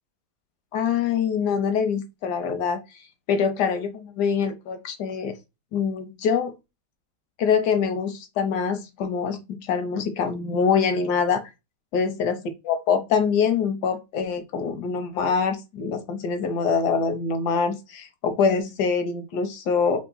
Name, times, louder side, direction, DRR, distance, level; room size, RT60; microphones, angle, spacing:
voice 1, 0.7-2.8 3.3-5.3 5.7-6.5 7.4-11.4 11.9-12.4 12.7-20.0, left 6 dB, 70° left, 8 dB, 1.0 m, -24 dB
3.6 x 3.0 x 3.8 m, 0.24 s
omnidirectional pair, 2.3 m